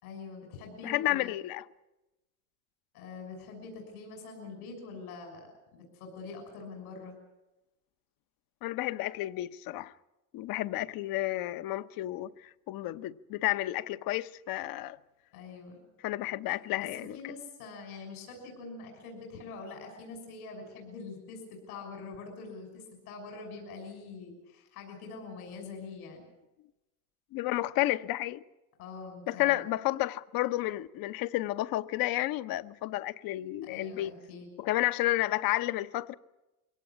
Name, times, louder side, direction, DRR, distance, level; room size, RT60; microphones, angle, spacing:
voice 1, 0.0-1.4 2.9-7.2 15.3-15.9 16.8-26.2 28.8-29.6 33.6-34.5, left 4 dB, 85° left, 6.4 m, -44 dB
voice 2, 0.8-1.6 8.6-9.9 10.3-15.0 16.0-17.2 27.3-28.4 29.3-34.1 34.6-36.1, left 16 dB, 55° left, 1.0 m, -31 dB
23.0 x 18.0 x 8.6 m
supercardioid pair, 100°, 42 cm